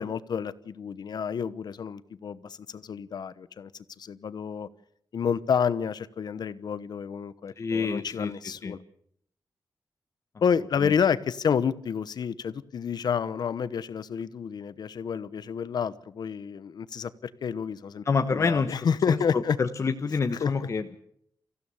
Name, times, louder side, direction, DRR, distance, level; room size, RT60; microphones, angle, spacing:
voice 1, 0.0-3.7 4.0-4.7 5.1-8.8 10.4-18.0 18.3-19.6 20.4-20.5, left 7 dB, 65° left, 15 dB, 1.0 m, -29 dB
voice 2, 7.6-8.3 8.6-8.7 10.8-10.9 18.1-21.0, left 5 dB, 40° left, 6 dB, 1.1 m, -28 dB
26.5 x 15.5 x 7.1 m, 0.69 s
wide cardioid pair, 165°, 8 cm